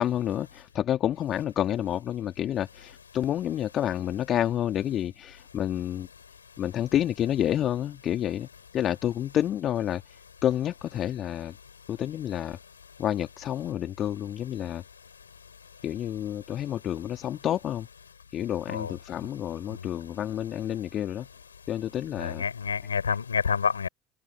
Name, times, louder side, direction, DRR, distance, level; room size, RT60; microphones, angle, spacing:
voice 1, 0.0-6.1 6.6-8.5 8.7-10.0 10.4-11.5 11.9-12.6 13.0-14.8 15.8-17.9 18.3-21.3 21.7-22.4, left 11 dB, 50° left, 2.3 m, -29 dB
voice 2, 22.2-23.9, left 6 dB, 85° left, 5.4 m, -28 dB
figure-of-eight pair, 55°, 0 cm